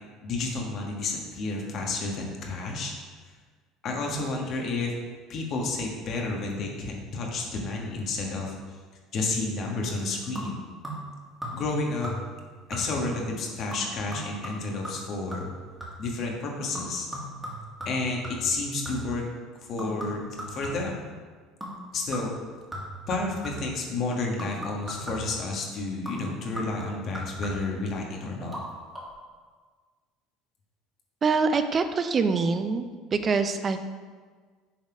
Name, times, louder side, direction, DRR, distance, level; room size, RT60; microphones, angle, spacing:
voice 1, 0.2-2.9 3.8-4.9 5.3-8.5 9.1-10.6 11.5-12.1 12.7-15.5 16.0-17.1 17.8-19.2 19.7-21.0 21.9-22.3 23.1-28.5, left 3 dB, 50° left, 0 dB, 1.4 m, -31 dB
sound 1, 10.4-11.1 11.4-11.8 12.0-12.4 12.7-13.1 13.7-16.1 16.7-19.2 19.8-21.1 21.6-21.8 22.1-23.8 24.4-25.4 26.1-27.8 28.4-28.6 28.9-29.0, equal, 10° right, 2.1 m, -38 dB
voice 2, 31.2-32.9 33.1-33.8, right 4 dB, 35° right, 9 dB, 0.5 m, -24 dB
7.3 x 4.1 x 4.9 m, 1.5 s
supercardioid pair, 110°, 0 cm